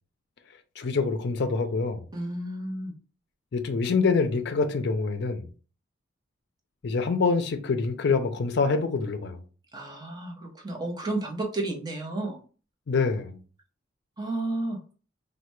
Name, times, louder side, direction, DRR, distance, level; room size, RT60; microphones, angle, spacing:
voice 1, 0.8-2.1 3.5-5.5 6.8-9.4 12.9-13.4, left 4 dB, 60° left, 0.4 m, -26 dB
voice 2, 2.1-2.9 9.7-12.4 14.2-14.8, right 2 dB, 20° right, 0.7 m, -32 dB
3.2 x 2.1 x 3.0 m
head